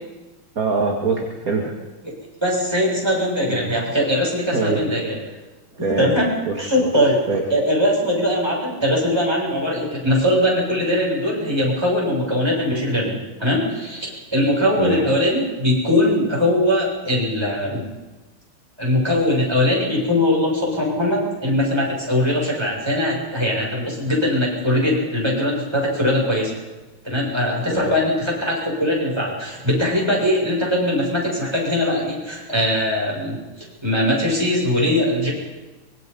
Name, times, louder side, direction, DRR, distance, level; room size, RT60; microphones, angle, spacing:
voice 1, 0.6-1.7 3.5-3.7 4.5-4.9 5.7-6.1 6.5-6.9 7.3-7.5 14.8-15.1 27.7-27.9, right 3 dB, 45° right, 0 dB, 2.5 m, -23 dB
voice 2, 2.4-5.1 6.0-6.3 6.6-7.2 7.5-17.8 18.8-26.5 27.0-35.3, left 1 dB, 10° right, -3 dB, 7.0 m, -21 dB
24.5 x 22.5 x 5.5 m, 1.2 s
omnidirectional pair, 2.2 m